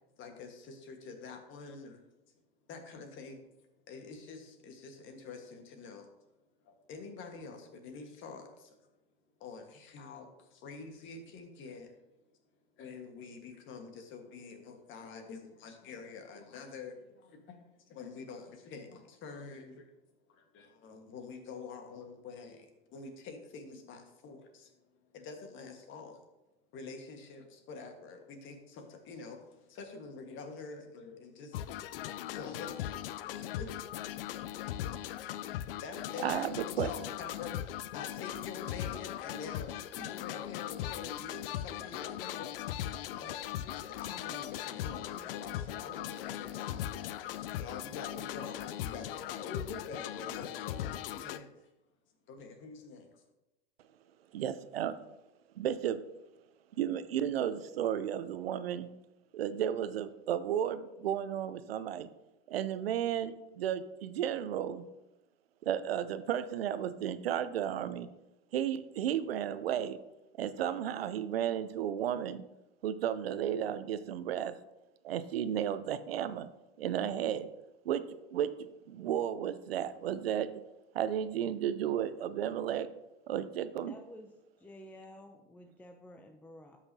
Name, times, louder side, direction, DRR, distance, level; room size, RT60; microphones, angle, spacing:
voice 1, 0.2-2.0 2.7-3.4 3.9-6.1 6.6-8.8 9.4-12.0 12.8-19.9 20.3-24.7 25.1-26.2 26.7-31.6 32.0-34.1 35.2-42.5 43.2-51.7 52.3-53.2, left 4 dB, 40° left, 5 dB, 1.5 m, -47 dB
sound 1, 31.5-51.4, left 12 dB, 70° left, 0.5 m, -39 dB
voice 2, 36.2-36.9 54.3-55.0 55.6-56.0 56.8-58.9 59.3-62.1 62.5-64.8 65.6-68.1 68.5-70.0 70.4-72.4 72.8-74.5 75.0-76.5 76.8-77.5 77.8-78.0 78.3-80.5 80.9-82.9 83.3-83.9, right 10 dB, 85° right, 13 dB, 0.6 m, -33 dB
voice 3, 83.9-84.3 84.6-86.8, left 1 dB, 5° left, 5 dB, 0.5 m, -51 dB
12.5 x 5.8 x 2.8 m, 0.96 s
hypercardioid pair, 110°, 29 cm